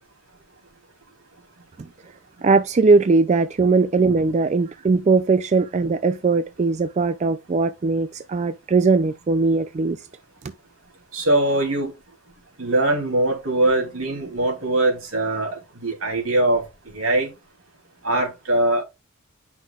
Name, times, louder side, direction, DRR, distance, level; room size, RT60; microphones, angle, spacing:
voice 1, 2.4-10.0, right 4 dB, 30° right, 0.3 m, -19 dB
voice 2, 11.1-11.9 12.6-16.6 16.9-17.3 18.0-18.8, right 2 dB, 75° right, 3.0 m, -22 dB
10.0 x 5.8 x 2.4 m
head